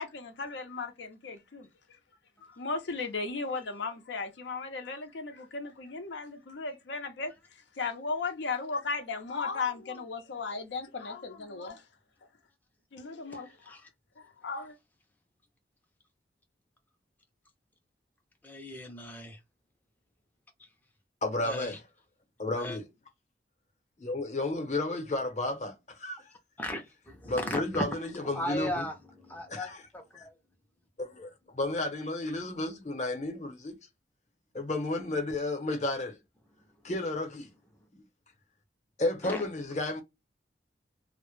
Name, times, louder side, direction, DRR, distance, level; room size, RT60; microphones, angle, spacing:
voice 1, 0.0-1.7 2.6-7.3 7.8-11.8 12.9-13.5 14.2-14.8, left 4 dB, 90° left, 0.6 m, -36 dB
voice 2, 13.3-13.9 18.4-19.4 21.4-21.8 22.6-22.8 26.6-30.3 39.2-39.4, left 1 dB, 10° left, 0.4 m, -37 dB
voice 3, 21.2-21.8 22.4-22.8 24.0-26.3 27.3-28.9 29.5-29.8 30.1-30.2 31.0-33.7 34.5-36.2 36.8-37.5 39.0-40.0, left 2 dB, 40° left, 0.7 m, -32 dB
2.1 x 2.0 x 3.0 m
head